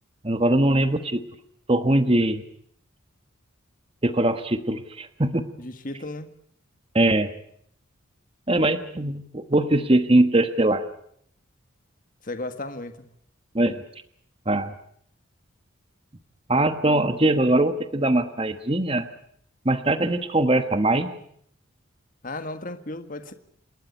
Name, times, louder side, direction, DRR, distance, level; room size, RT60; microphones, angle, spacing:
voice 1, 0.2-1.2 1.7-2.4 4.0-5.5 6.9-7.3 8.5-10.8 13.5-13.8 14.5-14.7 16.5-19.1 19.6-21.1, right 1 dB, 25° right, 1.2 m, -21 dB
voice 2, 5.6-6.3 12.2-13.1 22.2-23.3, left 2 dB, 40° left, 1.6 m, -35 dB
28.5 x 12.5 x 9.9 m
head